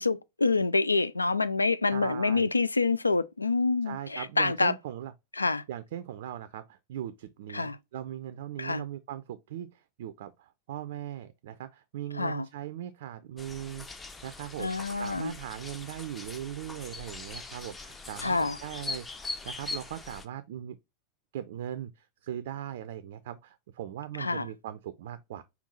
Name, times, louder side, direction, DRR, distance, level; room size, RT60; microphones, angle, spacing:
voice 1, 0.0-4.7 5.4-5.6 7.5-7.8 8.6-8.8 12.2-12.5 14.6-15.3 18.2-18.6 24.2-24.5, left 3 dB, 80° left, 0.3 m, -27 dB
voice 2, 1.9-2.5 3.9-5.1 5.4-13.9 14.2-20.8 21.3-25.4, right 11 dB, 55° right, 0.4 m, -39 dB
sound 1, 13.4-20.3, left 3 dB, 15° left, 0.6 m, -41 dB
5.3 x 2.3 x 4.1 m
figure-of-eight pair, 90°, 0 cm